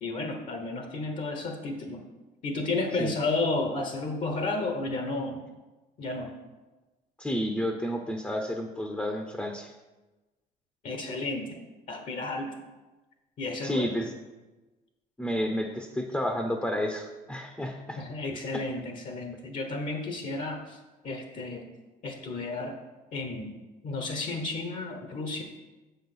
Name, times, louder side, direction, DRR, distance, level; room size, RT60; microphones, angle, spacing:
voice 1, 0.0-2.0 2.4-5.4 6.0-6.4 10.8-11.6 11.9-12.6 13.4-13.9 18.0-20.8 21.0-21.7 22.0-22.8 23.1-23.5 23.8-25.4, left 3 dB, 50° left, 4 dB, 1.1 m, -32 dB
voice 2, 7.2-9.7 13.6-14.1 15.2-18.0 18.5-18.6, equal, 10° left, 4 dB, 0.8 m, -31 dB
7.1 x 5.6 x 5.9 m, 1.2 s
cardioid pair, 110°, 17 cm